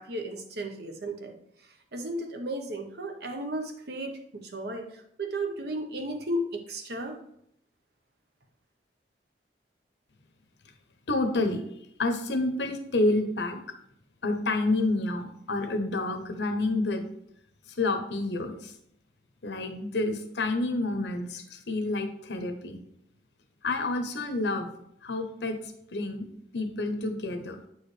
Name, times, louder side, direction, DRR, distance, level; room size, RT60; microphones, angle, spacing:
voice 1, 0.0-1.3 1.9-7.2, right 1 dB, 65° right, 4 dB, 1.0 m, -34 dB
voice 2, 11.1-13.6 14.2-17.0 17.8-18.7 19.4-22.8 23.6-24.7 25.0-25.6 25.9-26.3 26.5-27.6, left 2 dB, 75° left, 7 dB, 0.9 m, -29 dB
8.3 x 4.7 x 3.3 m, 0.72 s
head